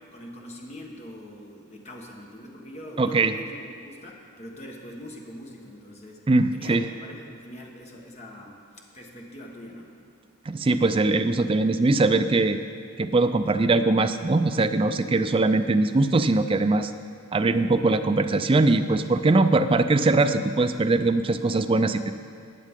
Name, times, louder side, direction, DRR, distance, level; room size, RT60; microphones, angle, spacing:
voice 1, 0.0-6.2 6.5-9.9, equal, 30° left, -1 dB, 1.3 m, -43 dB
voice 2, 3.0-3.3 6.3-6.8 10.5-12.6 13.0-16.9 17.3-22.1, right 2 dB, 25° right, 9 dB, 0.3 m, -21 dB
20.0 x 7.4 x 3.7 m, 2.2 s
head